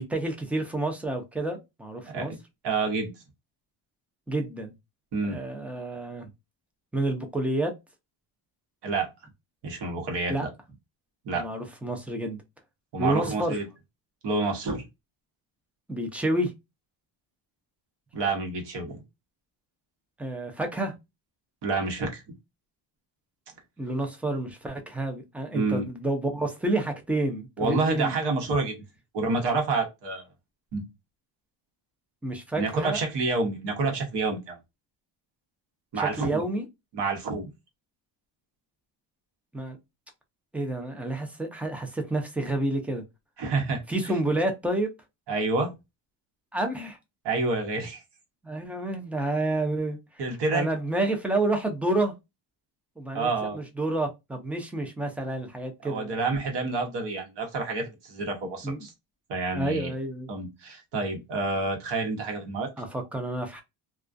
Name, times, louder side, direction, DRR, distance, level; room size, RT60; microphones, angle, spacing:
voice 1, 0.0-2.3 4.3-4.7 5.2-6.3 6.9-7.7 10.3-10.4 11.3-12.4 13.0-13.6 15.9-16.5 20.2-20.9 23.8-28.1 32.2-33.0 35.9-36.7 39.5-39.8 40.5-43.0 43.9-44.9 46.5-47.0 48.4-50.0 50.5-52.1 53.0-56.2 58.6-58.8 59.5-60.3 62.8-63.6, right 2 dB, 5° right, 0.3 m, -29 dB
voice 2, 2.0-2.4 2.6-3.1 5.1-5.4 8.8-9.1 9.6-10.5 11.2-11.4 12.9-13.7 14.2-14.8 18.1-19.0 21.6-22.2 25.5-25.9 27.6-28.8 29.1-30.3 30.7-30.8 32.6-34.6 35.9-36.4 36.9-37.4 43.4-43.8 45.3-45.7 47.2-48.0 50.2-50.7 53.1-53.6 55.8-58.9 59.3-59.9 60.3-62.7, right 3 dB, 65° right, 0.9 m, -28 dB
2.3 x 2.3 x 2.4 m
cardioid pair, 140°, 46 cm